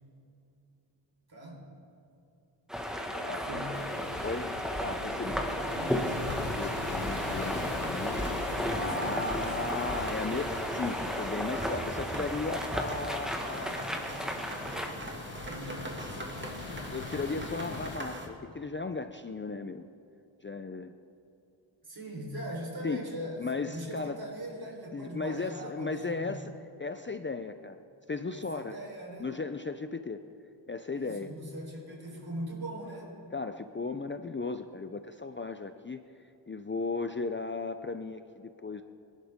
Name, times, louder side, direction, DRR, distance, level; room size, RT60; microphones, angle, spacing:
voice 1, 1.3-1.7 3.1-3.8 5.3-6.0 8.8-9.6 15.5-15.9 21.8-26.5 28.3-29.3 30.9-33.2, right 1 dB, 50° right, -1 dB, 4.1 m, -41 dB
sound 1, 2.7-14.9, equal, ahead, 1.6 m, -34 dB
sound 2, 3.7-18.0, left 6 dB, 75° left, 1.0 m, -44 dB
voice 2, 4.8-5.4 6.3-8.2 8.7-13.8 16.9-19.8 20.4-20.9 22.8-23.0 23.4-24.2 24.9-26.5 26.8-27.8 28.1-28.7 29.2-30.2 30.7-31.3 33.3-36.0 36.5-38.8, left 3 dB, 25° left, 8 dB, 0.5 m, -36 dB
sound 3, 5.4-18.3, right 1 dB, 25° right, 2.1 m, -41 dB
24.5 x 11.5 x 3.7 m, 2.8 s
wide cardioid pair, 85°, 47 cm